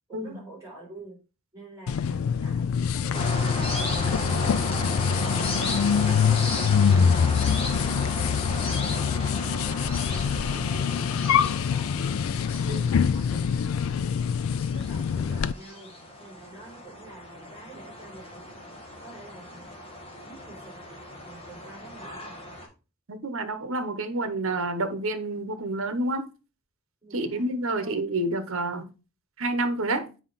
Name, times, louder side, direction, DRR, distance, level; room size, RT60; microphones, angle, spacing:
voice 1, 0.1-1.2 1.5-5.4 5.8-8.2 8.6-12.4 12.7-14.3 14.7-18.7 19.0-19.8 20.2-22.5 27.0-27.5 27.8-27.9, right 2 dB, 15° right, 3.9 m, -47 dB
sound 1, 1.9-15.5, left 7 dB, 75° left, 0.4 m, -25 dB
sound 2, 3.1-22.7, left 1 dB, 25° left, 1.7 m, -36 dB
voice 2, 23.1-26.3 27.1-28.9 29.4-30.1, right 2 dB, 70° right, 1.0 m, -29 dB
7.4 x 4.9 x 4.0 m
head